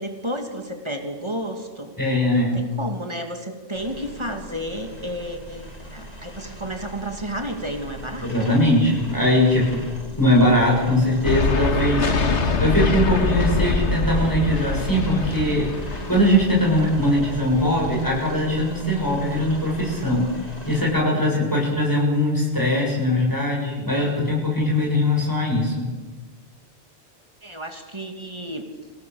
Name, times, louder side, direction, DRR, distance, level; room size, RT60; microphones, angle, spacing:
voice 1, 0.0-1.9 2.3-8.3 27.4-28.7, equal, 25° right, 5 dB, 2.5 m, -32 dB
voice 2, 2.0-2.6 8.2-9.8 10.2-12.1 12.6-25.9, left 1 dB, 15° left, -3 dB, 7.3 m, -21 dB
sound 1, 3.7-20.8, equal, 35° left, 3.7 m, -39 dB
sound 2, 11.2-18.2, left 3 dB, 80° left, 1.9 m, -24 dB
26.5 x 18.5 x 7.1 m, 1.3 s
omnidirectional pair, 1.2 m